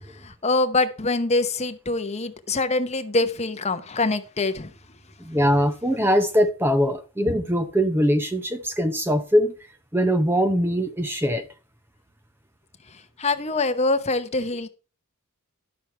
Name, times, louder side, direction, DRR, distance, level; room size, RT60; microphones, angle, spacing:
voice 1, 0.2-4.7 13.2-14.7, left 2 dB, 30° left, 0.8 m, -24 dB
voice 2, 5.2-9.5 9.9-11.4, equal, 10° right, 0.7 m, -22 dB
11.5 x 6.3 x 4.5 m
head